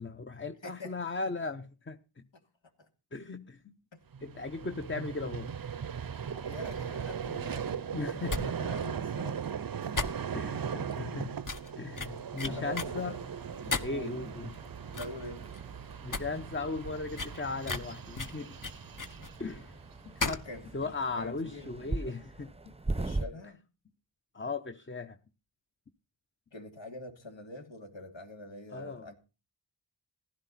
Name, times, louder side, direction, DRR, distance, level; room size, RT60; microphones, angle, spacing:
voice 1, 0.0-2.2 3.1-3.8 4.2-5.5 7.9-8.5 10.3-11.3 11.8-13.1 13.7-14.5 16.0-18.5 19.4-19.7 20.0-20.5 20.7-22.8 24.3-25.2 28.7-29.1, left 3 dB, 25° left, 0.9 m, -37 dB
voice 2, 0.6-0.9 2.3-2.5 2.8-2.9 6.4-9.4 12.5-13.2 13.9-14.3 14.9-15.5 20.4-20.7 21.2-22.1 23.0-23.6 26.5-29.2, left 1 dB, 75° left, 2.8 m, -45 dB
Vehicle, 4.1-20.5, right 7 dB, 50° right, 0.7 m, -39 dB
sound 1, 8.3-8.4 8.7-8.9 9.2-9.3 9.9-10.5 10.9-11.0 11.4-11.7 12.0-12.9 13.7-14.1 14.5-14.6 14.9-15.2 15.5-15.6 16.0-16.2 16.5-16.6 17.2-19.3 20.2-20.5 20.8-20.9, left 3 dB, 45° left, 1.4 m, -34 dB
sound 2, 12.5-23.3, right 2 dB, 15° right, 0.9 m, -42 dB
15.5 x 12.0 x 4.2 m
wide cardioid pair, 60°, 46 cm